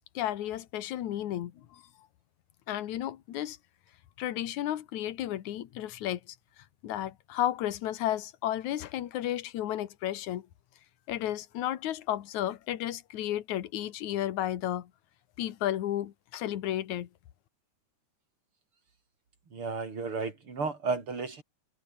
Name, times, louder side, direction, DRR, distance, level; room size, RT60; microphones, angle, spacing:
voice 1, 0.1-1.8 2.7-3.6 4.2-6.4 6.8-10.5 11.1-14.9 15.4-17.1, left 12 dB, 70° left, 2.7 m, -33 dB
voice 2, 19.5-21.4, right 4 dB, 40° right, 4.4 m, -33 dB
omnidirectional pair, 3.6 m